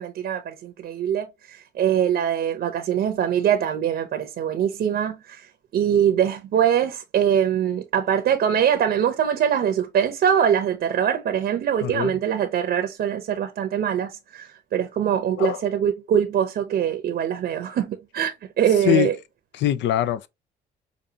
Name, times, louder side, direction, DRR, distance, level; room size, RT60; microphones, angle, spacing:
voice 1, 0.0-5.5 5.7-19.1, right 9 dB, 60° right, 0.7 m, -23 dB
voice 2, 11.8-12.2 15.4-15.6 18.8-19.1 19.5-20.3, left 12 dB, 75° left, 0.5 m, -23 dB
5.1 x 2.6 x 2.7 m
cardioid pair, 80°, 19 cm